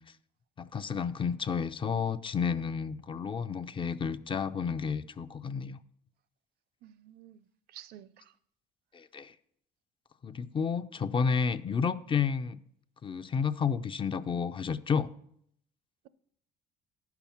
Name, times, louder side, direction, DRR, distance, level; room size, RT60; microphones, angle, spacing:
voice 1, 0.6-5.8 8.9-9.3 10.2-12.6 13.0-15.1, left 6 dB, 30° left, 0.5 m, -31 dB
voice 2, 6.8-7.4 7.7-8.2, right 12 dB, 70° right, 0.6 m, -51 dB
10.0 x 5.9 x 7.1 m
cardioid pair, 110°, 17 cm